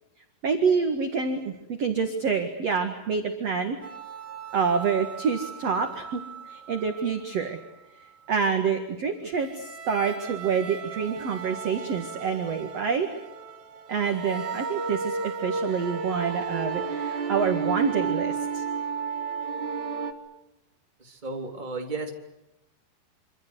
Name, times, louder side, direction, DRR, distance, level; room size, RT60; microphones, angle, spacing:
voice 1, 0.4-3.8 4.5-6.2 6.5-7.6 8.3-13.1 13.9-18.6, right 5 dB, 45° right, 5 dB, 2.3 m, -27 dB
sound 1, 3.8-7.5 9.4-20.1, right 5 dB, 65° right, 1.0 m, -34 dB
voice 2, 21.0-22.1, right 3 dB, 10° right, 2 dB, 2.9 m, -34 dB
26.5 x 25.5 x 8.0 m, 0.91 s
omnidirectional pair, 4.9 m